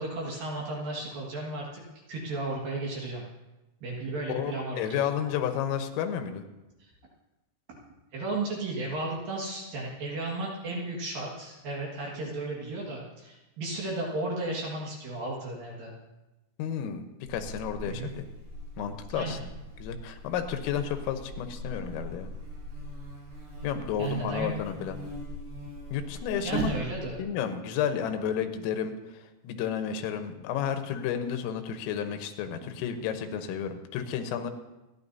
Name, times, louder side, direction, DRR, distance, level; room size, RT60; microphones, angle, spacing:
voice 1, 0.0-1.8 2.1-3.2 3.8-5.1 8.1-15.9 17.9-18.1 19.1-19.4 24.0-24.5 26.4-27.2, right 2 dB, 55° right, -3 dB, 2.9 m, -34 dB
voice 2, 4.3-6.5 16.6-18.2 18.8-19.4 19.8-22.3 23.6-25.0 25.9-26.7 27.2-34.5, left 8 dB, 85° left, 7 dB, 3.6 m, -32 dB
Buzz, 17.2-27.2, equal, 70° right, 9.1 m, -40 dB
28.5 x 11.5 x 2.7 m, 1.0 s
omnidirectional pair, 5.8 m